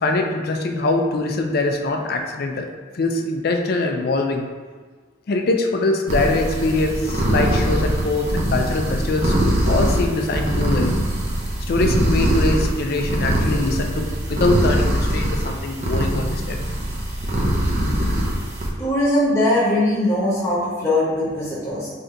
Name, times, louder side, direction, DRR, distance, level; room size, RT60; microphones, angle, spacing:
voice 1, 0.0-2.7 2.9-4.5 5.3-9.3 9.7-10.9 11.7-16.6, left 2 dB, 50° left, 3 dB, 0.4 m, -23 dB
sound 1, 6.1-18.7, right 1 dB, 35° right, 0.6 m, -22 dB
voice 2, 18.8-21.9, left 1 dB, 15° left, -9 dB, 1.1 m, -20 dB
3.3 x 2.7 x 3.7 m, 1.4 s
head